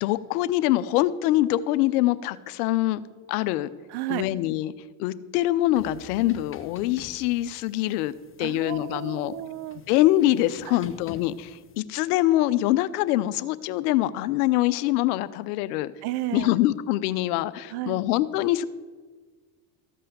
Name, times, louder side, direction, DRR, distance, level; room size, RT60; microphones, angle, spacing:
voice 1, 0.0-3.0 3.3-3.7 4.1-4.7 5.0-8.1 8.4-9.3 9.9-15.9 16.3-18.6, left 15 dB, 80° left, 16 dB, 0.7 m, -24 dB
voice 2, 3.9-4.3 8.4-9.8 16.0-16.6 17.7-18.0, right 15 dB, 55° right, 19 dB, 0.7 m, -32 dB
sound 1, 5.7-11.8, left 7 dB, 25° left, 1.0 m, -48 dB
14.0 x 5.6 x 8.0 m, 1.4 s
supercardioid pair, 85°, 45 cm